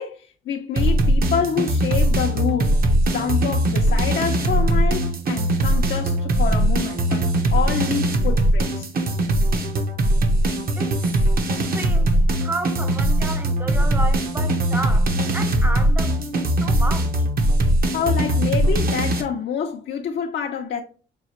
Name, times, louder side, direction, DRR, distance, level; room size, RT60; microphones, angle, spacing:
voice 1, 0.0-2.8 3.1-8.9 17.9-20.8, left 7 dB, 60° left, 0.6 m, -27 dB
sound 1, 0.8-19.2, right 1 dB, 50° right, 0.9 m, -20 dB
voice 2, 10.8-11.3 11.6-17.3, right 1 dB, 10° right, 0.6 m, -32 dB
6.0 x 2.4 x 2.9 m
cardioid pair, 90°, 20 cm